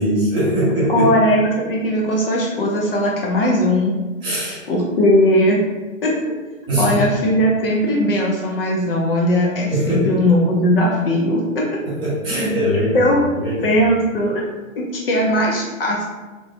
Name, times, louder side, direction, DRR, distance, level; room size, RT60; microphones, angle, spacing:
voice 1, 0.0-1.1 4.2-4.6 6.7-7.0 9.7-10.1 11.8-13.8, equal, 10° right, -10 dB, 0.7 m, -21 dB
voice 2, 0.9-3.9 4.7-5.6 6.0-6.2 6.8-11.7 12.9-13.2 13.6-14.4 14.8-16.0, equal, 45° left, -2 dB, 0.5 m, -18 dB
3.0 x 2.0 x 2.6 m, 1.3 s
hypercardioid pair, 140°, 41 cm